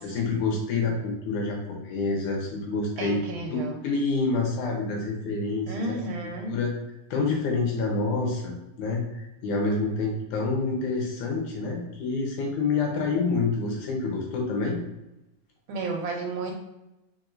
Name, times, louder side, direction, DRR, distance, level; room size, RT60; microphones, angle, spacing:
voice 1, 0.0-3.2 3.5-6.1 6.5-6.7 7.1-14.8, left 3 dB, 75° left, 0 dB, 2.3 m, -27 dB
voice 2, 3.0-3.8 5.7-6.5 15.7-16.5, right 3 dB, 75° right, 2 dB, 2.2 m, -32 dB
4.6 x 4.5 x 2.5 m, 0.92 s
omnidirectional pair, 3.8 m